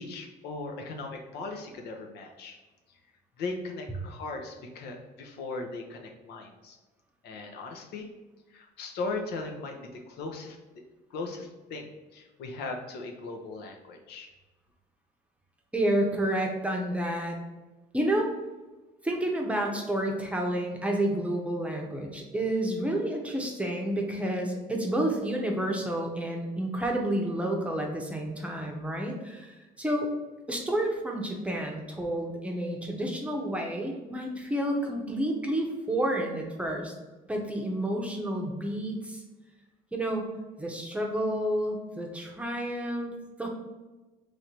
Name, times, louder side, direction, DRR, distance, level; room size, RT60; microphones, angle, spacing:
voice 1, 0.0-2.6 3.4-6.8 7.2-8.1 8.5-10.6 11.1-14.3, left 3 dB, 75° left, 2 dB, 0.7 m, -38 dB
voice 2, 15.7-17.4 17.9-18.4 19.0-30.1 30.5-36.9 37.3-39.2 39.9-40.3 40.6-43.1 43.4-43.5, right 1 dB, 5° right, 1 dB, 0.7 m, -30 dB
3.2 x 2.6 x 4.5 m, 1.2 s
cardioid pair, 110°, 17 cm